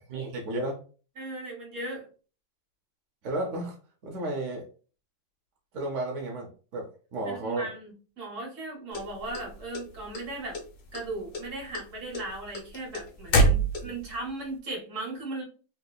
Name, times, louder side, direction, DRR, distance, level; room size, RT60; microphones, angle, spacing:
voice 1, 0.1-0.8 3.2-3.7 4.0-4.6 5.7-7.7 13.8-13.9, right 2 dB, 60° right, 0 dB, 0.8 m, -33 dB
voice 2, 1.2-2.1 7.2-10.6 10.9-15.4, right 2 dB, 45° right, -2 dB, 1.4 m, -37 dB
sound 1, 8.9-10.2 10.5-11.1 11.3-14.2, right 1 dB, 70° left, 1.4 m, -25 dB
3.3 x 2.9 x 2.3 m, 0.38 s
omnidirectional pair, 2.0 m